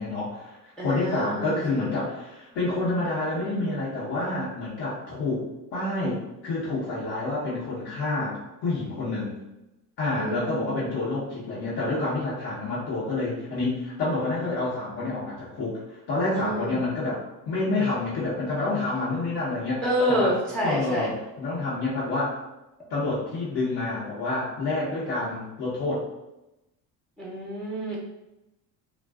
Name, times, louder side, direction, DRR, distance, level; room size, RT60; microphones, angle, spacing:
voice 1, 0.0-5.4 5.7-9.4 10.0-17.2 17.5-19.8 20.1-20.3 20.6-22.4 22.9-26.0, left 2 dB, 75° left, -9 dB, 1.0 m, -28 dB
voice 2, 0.8-1.8 10.1-10.9 16.3-16.8 19.8-21.1 27.2-28.0, equal, ahead, -4 dB, 0.4 m, -28 dB
2.5 x 2.2 x 2.3 m, 0.95 s
cardioid pair, 130°, 38 cm